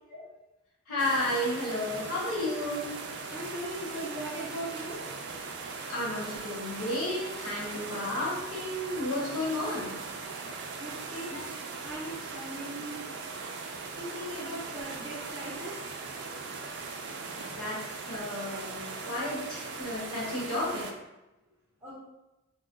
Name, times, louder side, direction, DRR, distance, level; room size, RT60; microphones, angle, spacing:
voice 1, 0.9-3.0 5.9-10.0 11.3-11.4 17.5-20.9, left 1 dB, 85° left, -6 dB, 1.0 m, -32 dB
sound 1, 1.0-20.9, right 4 dB, 55° right, 0.4 m, -39 dB
voice 2, 3.2-5.1 10.8-13.1 14.0-16.3 17.2-17.3 21.8-22.0, right 1 dB, 10° right, -8 dB, 0.6 m, -40 dB
2.4 x 2.1 x 3.7 m, 0.98 s
head